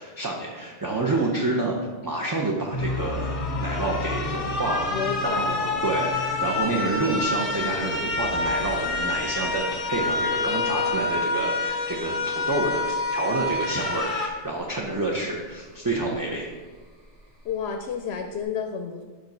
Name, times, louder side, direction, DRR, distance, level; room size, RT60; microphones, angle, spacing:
voice 1, 0.0-1.7 2.0-4.9 5.2-5.4 5.8-12.8 13.1-16.5, right 2 dB, 25° right, -2 dB, 0.5 m, -28 dB
sound 1, 2.7-14.3, left 3 dB, 35° left, 0.7 m, -28 dB
sound 2, 2.7-18.4, left 1 dB, 85° right, 2.2 m, -38 dB
voice 2, 4.9-5.9 17.4-19.0, left 6 dB, 70° left, 5 dB, 0.8 m, -31 dB
sound 3, 7.5-11.1, equal, 50° right, 1.7 m, -45 dB
5.2 x 5.1 x 5.3 m, 1.4 s
omnidirectional pair, 1.2 m